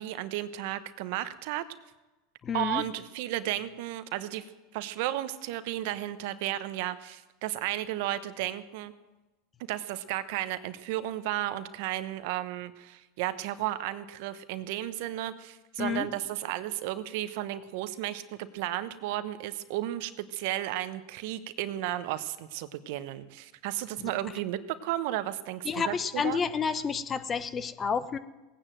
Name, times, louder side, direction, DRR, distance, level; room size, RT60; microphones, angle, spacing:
voice 1, 0.0-1.6 2.5-4.4 4.7-8.9 9.6-26.4, right 14 dB, 65° right, 13 dB, 0.9 m, -33 dB
voice 2, 2.4-2.8 15.8-16.1 24.0-24.1 25.6-28.2, left 6 dB, 30° left, 13 dB, 0.9 m, -30 dB
18.0 x 9.2 x 7.6 m, 1.1 s
hypercardioid pair, 95°, 0 cm